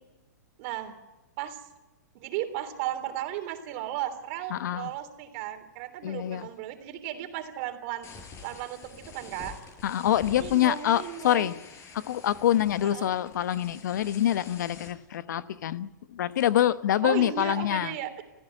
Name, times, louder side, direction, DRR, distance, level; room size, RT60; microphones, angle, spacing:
voice 1, 0.6-1.0 1.4-1.7 2.1-8.1 8.4-9.6 10.3-11.5 12.9-13.2 17.0-18.2, right 12 dB, 50° right, 3.4 m, -35 dB
voice 2, 4.5-4.9 6.0-6.5 9.8-11.6 11.9-18.0, left 11 dB, 70° left, 1.0 m, -26 dB
sound 1, 8.0-14.9, left 5 dB, 25° left, 7.0 m, -47 dB
29.0 x 14.5 x 9.1 m
hypercardioid pair, 125°, 10 cm